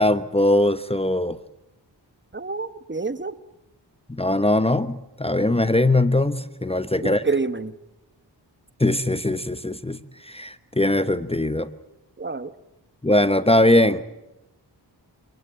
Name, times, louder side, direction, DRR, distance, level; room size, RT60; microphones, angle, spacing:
voice 1, 0.0-1.4 4.1-7.2 8.8-11.7 13.0-14.0, left 1 dB, 15° left, 13 dB, 1.0 m, -21 dB
voice 2, 2.3-3.3 7.0-7.7 12.2-12.5, right 4 dB, 25° right, 13 dB, 1.3 m, -27 dB
27.5 x 19.0 x 8.9 m, 0.93 s
cardioid pair, 60°, 43 cm